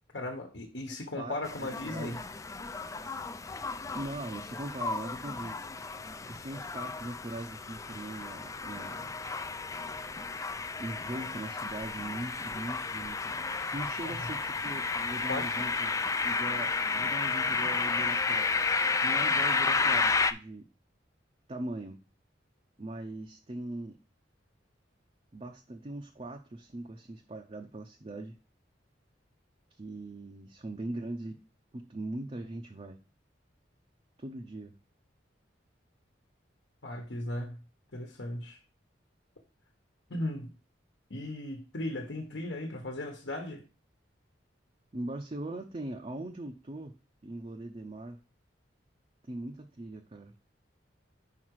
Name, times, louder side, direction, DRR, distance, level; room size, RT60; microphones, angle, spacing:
voice 1, 0.1-2.2 14.0-14.2 15.3-15.5 36.8-37.6 37.9-38.6 40.1-40.5 41.1-43.6, left 1 dB, 65° left, 1.2 m, -37 dB
voice 2, 1.2-2.2 3.9-5.6 6.3-9.2 10.8-13.2 13.7-18.5 19.0-20.7 21.5-22.0 22.8-24.0 25.3-28.4 29.8-31.5 31.7-33.0 34.2-34.7 44.9-46.9 47.2-48.2 49.3-50.3, right 1 dB, 30° right, 0.6 m, -40 dB
sound 1, 1.4-20.3, left 4 dB, 15° left, 0.3 m, -32 dB
5.8 x 5.0 x 4.7 m
head